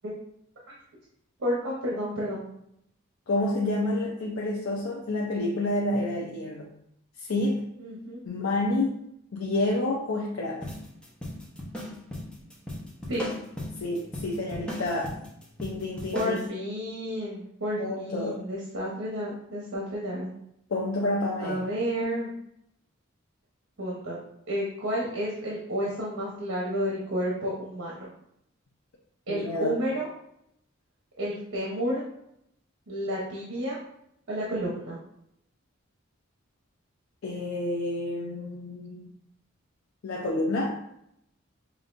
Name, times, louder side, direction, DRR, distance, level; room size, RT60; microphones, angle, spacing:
voice 1, 1.4-2.5 7.8-8.2 13.1-13.2 16.1-20.3 21.4-22.3 23.8-24.2 24.5-28.1 29.3-30.1 31.2-32.0 32.9-33.8 34.3-35.0, equal, 85° right, -5 dB, 0.9 m, -31 dB
voice 2, 3.3-6.8 7.2-7.7 8.2-9.0 9.3-10.7 13.8-15.2 15.6-16.5 17.8-18.4 20.7-21.7 29.3-29.8 37.2-39.1 40.0-40.8, left 2 dB, 90° left, -1 dB, 0.5 m, -29 dB
sound 1, 10.6-16.5, left 1 dB, 5° left, 0.8 m, -37 dB
5.7 x 2.6 x 2.5 m, 0.76 s
head